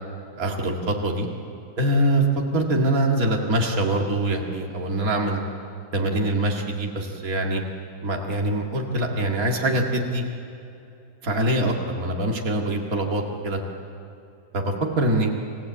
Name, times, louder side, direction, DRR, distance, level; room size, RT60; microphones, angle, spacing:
voice 1, 0.4-1.3 1.8-2.3 2.5-5.4 5.9-7.6 8.0-10.2 11.2-13.6 14.5-15.3, right 1 dB, 60° right, 0 dB, 2.5 m, -24 dB
27.5 x 16.0 x 8.6 m, 2.7 s
omnidirectional pair, 1.7 m